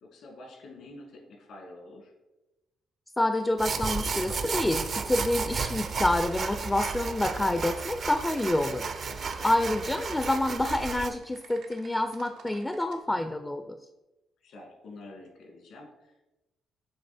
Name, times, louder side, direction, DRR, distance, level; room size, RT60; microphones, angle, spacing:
voice 1, 0.0-2.1 9.1-9.6 14.4-16.2, left 2 dB, 75° left, 1 dB, 2.0 m, -48 dB
voice 2, 3.2-13.8, left 1 dB, 15° left, 7 dB, 0.4 m, -28 dB
sound 1, 3.6-11.1, right 5 dB, 50° right, 0.5 m, -33 dB
Typing, 7.8-13.0, right 5 dB, 90° right, 0.8 m, -52 dB
7.7 x 3.2 x 4.2 m, 1.0 s
cardioid pair, 90°, 0 cm